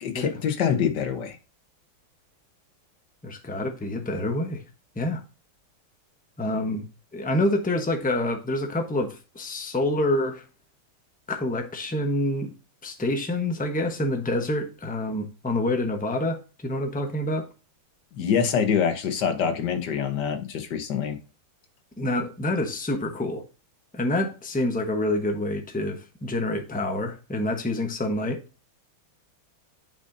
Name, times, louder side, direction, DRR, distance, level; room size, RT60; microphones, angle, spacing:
voice 1, 0.0-1.4 18.2-21.2, left 7 dB, 60° left, 7 dB, 1.6 m, -25 dB
voice 2, 3.2-4.6 5.0-5.2 6.4-6.9 7.1-10.4 11.3-12.5 12.8-17.5 22.0-23.4 23.9-28.4, left 1 dB, 10° left, 4 dB, 0.4 m, -27 dB
8.9 x 5.3 x 2.6 m, 0.34 s
omnidirectional pair, 2.3 m